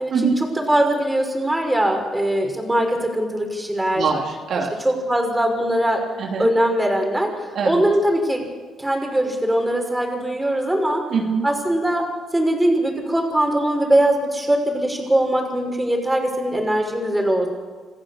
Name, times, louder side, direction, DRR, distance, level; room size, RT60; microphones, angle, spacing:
voice 1, 0.0-4.1 4.8-6.0 6.4-8.4 8.8-11.0 11.4-12.1 12.3-17.5, right 1 dB, 10° right, 2 dB, 5.8 m, -21 dB
voice 2, 3.9-4.7 6.2-6.5 7.5-7.8 11.1-11.5, right 5 dB, 65° right, 0 dB, 3.0 m, -23 dB
28.0 x 15.0 x 7.3 m, 1.4 s
cardioid pair, 90°, 0 cm